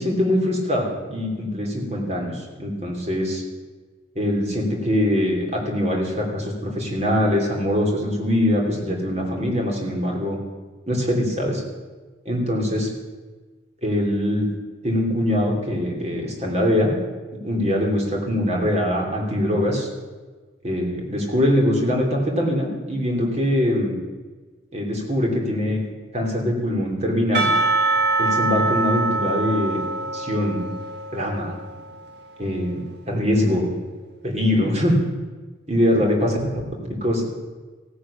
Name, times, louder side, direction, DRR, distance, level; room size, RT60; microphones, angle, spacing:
voice 1, 0.0-3.4 4.1-10.4 10.9-11.6 12.2-12.9 13.8-14.5 14.8-16.9 17.4-19.9 20.6-23.9 24.7-25.8 26.1-27.5 28.2-29.8 30.1-30.7 31.1-31.5 32.4-33.7 34.2-35.0 35.7-36.5 37.0-37.2, left 1 dB, 35° right, 0 dB, 3.0 m, -22 dB
Percussion / Church bell, 27.3-32.4, right 3 dB, 55° right, 1.4 m, -24 dB
15.5 x 10.0 x 7.0 m, 1.3 s
head